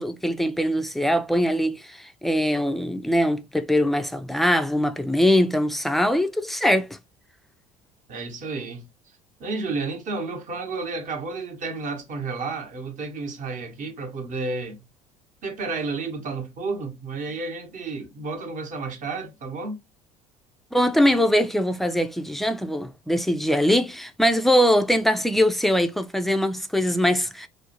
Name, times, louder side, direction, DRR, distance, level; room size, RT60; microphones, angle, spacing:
voice 1, 0.0-6.9 20.7-27.5, equal, ahead, 0.3 m, -22 dB
voice 2, 8.1-8.9 9.4-14.8 15.4-19.8, right 3 dB, 45° right, 0.9 m, -31 dB
2.5 x 2.0 x 2.7 m
hypercardioid pair, 65°, 19 cm